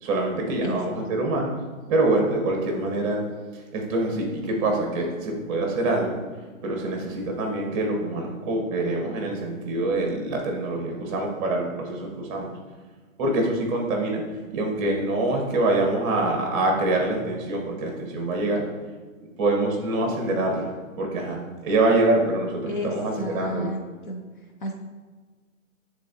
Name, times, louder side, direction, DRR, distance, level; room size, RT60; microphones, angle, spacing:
voice 1, 0.0-1.5 1.9-3.2 3.5-6.2 6.6-12.5 13.2-14.2 14.5-18.6 19.4-23.8, right 2 dB, 25° right, 1 dB, 1.1 m, -25 dB
voice 2, 23.2-23.8 24.1-24.2 24.6-24.8, equal, 40° left, 2 dB, 0.5 m, -31 dB
10.0 x 3.7 x 2.7 m, 1.4 s
hypercardioid pair, 140°, 42 cm